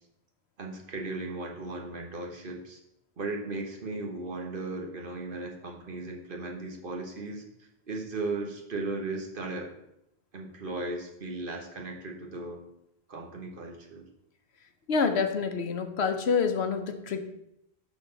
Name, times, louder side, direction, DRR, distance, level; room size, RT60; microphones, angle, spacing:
voice 1, 0.6-2.8 3.2-9.7 10.3-12.6 13.1-14.0, right 3 dB, 55° right, 2 dB, 1.3 m, -36 dB
voice 2, 14.9-17.2, left 5 dB, 80° left, 7 dB, 1.0 m, -27 dB
11.0 x 4.2 x 3.9 m, 0.81 s
omnidirectional pair, 1.1 m